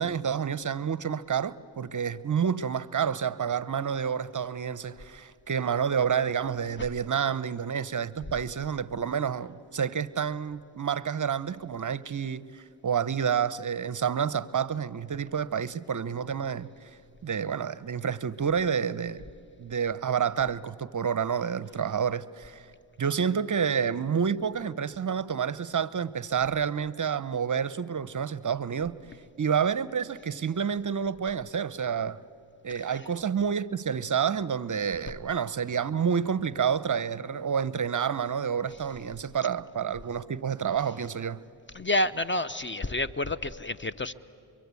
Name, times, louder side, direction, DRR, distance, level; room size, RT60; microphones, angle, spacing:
voice 1, 0.0-16.9 17.2-19.2 19.6-22.7 23.0-29.0 29.4-32.2 32.6-41.4, right 7 dB, 40° right, 0.7 m, -29 dB
voice 2, 41.7-44.1, left 1 dB, 25° left, 0.6 m, -29 dB
24.5 x 23.5 x 8.2 m
cardioid pair, 50°, 48 cm